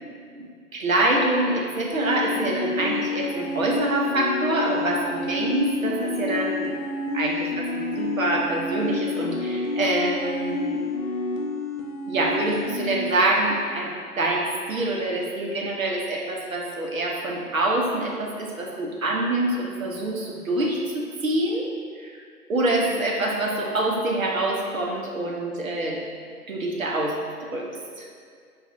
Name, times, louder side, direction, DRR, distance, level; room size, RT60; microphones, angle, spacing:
voice 1, 0.7-6.7 7.1-10.8 12.1-21.7 22.0-22.2 22.5-26.0 26.5-27.1 27.5-27.7 28.0-28.1, right 2 dB, 60° right, -1 dB, 0.6 m, -25 dB
sound 1, 1.9-13.1, left 3 dB, 55° left, 0.5 m, -29 dB
4.0 x 2.3 x 2.5 m, 2.1 s
figure-of-eight pair, 150°, 47 cm